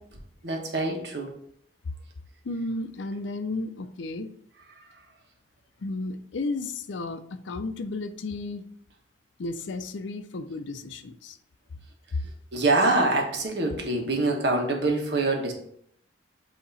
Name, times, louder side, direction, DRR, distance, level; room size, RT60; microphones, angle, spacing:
voice 1, 0.4-1.3 12.5-15.5, right 2 dB, 65° right, 1 dB, 1.3 m, -25 dB
voice 2, 2.4-4.3 5.8-8.6 9.4-11.4 12.1-12.2, left 2 dB, 85° left, 11 dB, 0.5 m, -33 dB
8.1 x 2.9 x 4.0 m, 0.68 s
head